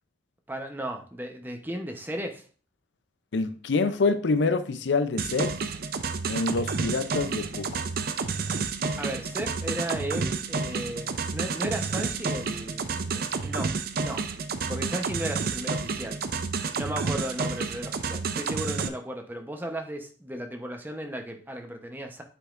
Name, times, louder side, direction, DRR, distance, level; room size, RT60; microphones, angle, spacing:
voice 1, 0.5-2.4 9.0-13.7 14.0-14.2 14.7-16.2 16.8-22.2, right 1 dB, 10° right, 0.8 m, -35 dB
voice 2, 3.3-5.6 6.3-7.7, left 3 dB, 75° left, 0.5 m, -26 dB
sound 1, 5.2-18.9, right 4 dB, 55° right, 0.5 m, -30 dB
9.2 x 5.2 x 2.5 m
head